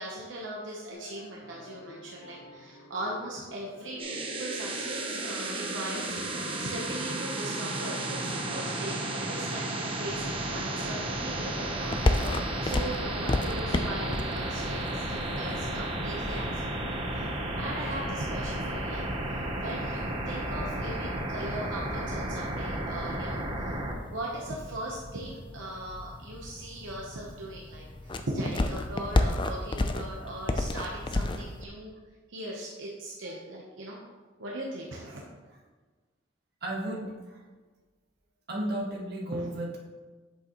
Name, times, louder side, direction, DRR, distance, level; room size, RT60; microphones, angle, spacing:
voice 1, 0.0-12.0 12.3-17.3 17.5-23.7 24.1-32.0 32.3-34.0 34.4-35.2 39.3-39.5, right 1 dB, 75° right, -3 dB, 1.0 m, -39 dB
sound 1, 0.9-15.8, left 1 dB, 70° left, 0.8 m, -50 dB
sound 2, 4.0-23.9, right 1 dB, 30° right, 1.0 m, -33 dB
sound 3, 11.8-31.6, left 2 dB, 25° left, 0.4 m, -34 dB
voice 2, 36.6-37.4 38.5-39.9, right 1 dB, 55° right, -3 dB, 1.7 m, -34 dB
8.3 x 6.7 x 3.0 m, 1.3 s
head